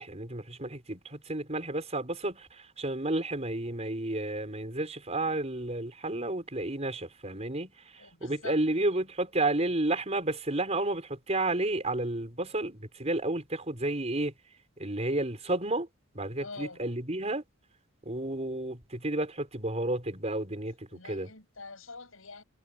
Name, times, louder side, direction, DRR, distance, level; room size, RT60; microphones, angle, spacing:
voice 1, 0.0-14.3 14.8-15.9 16.1-17.4 18.0-21.3, right 2 dB, 30° right, 5.0 m, -31 dB
voice 2, 8.0-8.8 16.4-16.9 20.9-22.4, left 3 dB, 90° left, 6.8 m, -45 dB
head